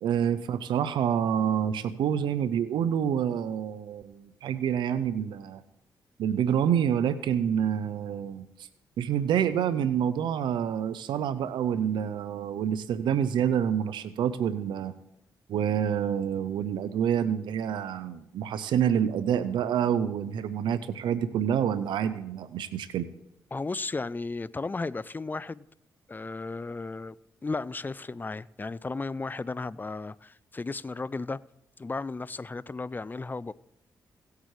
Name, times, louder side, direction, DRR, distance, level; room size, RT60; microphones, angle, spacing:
voice 1, 0.0-5.6 6.2-8.7 9.0-14.9 15.5-23.1, right 9 dB, 80° right, 0.5 m, -27 dB
voice 2, 23.5-25.7 26.1-27.2 27.4-31.4 31.8-33.5, left 3 dB, 25° left, 0.4 m, -34 dB
17.5 x 8.1 x 3.2 m
supercardioid pair, 55°, 8 cm